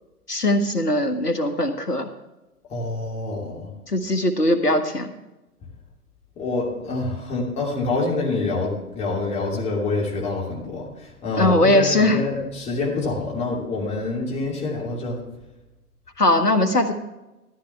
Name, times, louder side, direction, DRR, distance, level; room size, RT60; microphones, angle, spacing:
voice 1, 0.3-2.1 3.9-5.1 11.4-12.2 16.2-16.9, left 1 dB, 85° left, 7 dB, 1.7 m, -20 dB
voice 2, 2.7-3.7 6.4-15.2, left 3 dB, 15° left, -3 dB, 2.9 m, -26 dB
13.5 x 13.0 x 3.4 m, 1.0 s
figure-of-eight pair, 125°, 46 cm